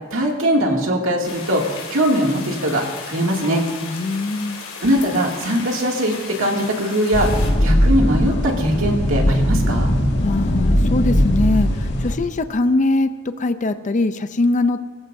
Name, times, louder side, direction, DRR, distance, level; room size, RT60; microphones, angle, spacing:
voice 1, 0.1-1.6 1.9-3.6 4.8-7.3 7.6-9.9, equal, 70° right, 0 dB, 2.4 m, -20 dB
sound 1, 1.2-7.5, left 5 dB, 85° left, 3.1 m, -35 dB
voice 2, 3.8-4.6 10.2-14.9, left 2 dB, 35° left, 10 dB, 0.5 m, -22 dB
sound 2, 7.1-12.1, equal, 60° left, 1.9 m, -19 dB
22.5 x 15.0 x 2.7 m, 1.5 s
head